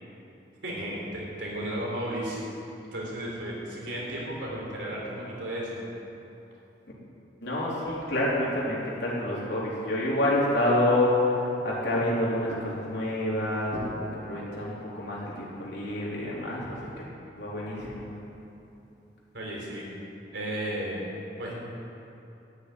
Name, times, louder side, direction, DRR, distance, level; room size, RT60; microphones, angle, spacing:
voice 1, 0.6-2.4 2.9-5.8 19.3-19.9 20.3-21.1 21.4-21.5, right 1 dB, 85° right, -4 dB, 3.7 m, -34 dB
voice 2, 7.4-17.0 17.4-18.1, left 1 dB, 70° left, -6 dB, 3.6 m, -28 dB
13.0 x 6.6 x 9.7 m, 2.8 s
head